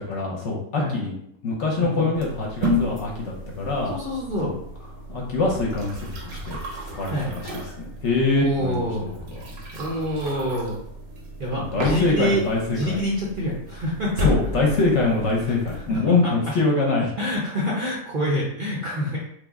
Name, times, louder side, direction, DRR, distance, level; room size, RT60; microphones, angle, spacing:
voice 1, 0.1-1.1 1.4-3.9 4.4-4.5 5.1-5.9 6.2-6.6 6.9-7.4 7.8-9.2 11.7-13.0 14.2-17.1, left 3 dB, 60° left, -1 dB, 0.9 m, -24 dB
sound 1, 2.1-16.0, left 1 dB, 80° right, 1.2 m, -33 dB
voice 2, 3.9-4.5 7.1-7.3 8.3-9.0 9.8-10.8 11.4-14.3 15.5-15.6 15.9-16.3 17.2-19.2, equal, 50° right, -4 dB, 0.6 m, -26 dB
3.3 x 2.1 x 3.5 m, 0.71 s
omnidirectional pair, 1.5 m